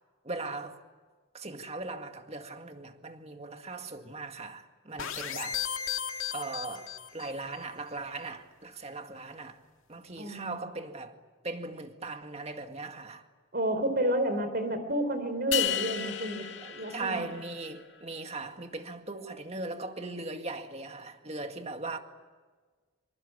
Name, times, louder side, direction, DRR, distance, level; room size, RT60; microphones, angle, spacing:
voice 1, 0.2-0.8 1.3-5.9 6.3-9.6 9.9-11.2 11.4-13.3 16.6-22.0, right 3 dB, 30° right, 2.0 m, -39 dB
sound 1, 5.0-7.4, left 8 dB, 75° left, 2.2 m, -35 dB
voice 2, 10.2-10.6 13.5-17.3, right 1 dB, 45° right, 4.3 m, -30 dB
sound 2, 15.5-17.8, left 11 dB, 55° left, 2.2 m, -33 dB
26.0 x 25.5 x 8.5 m
head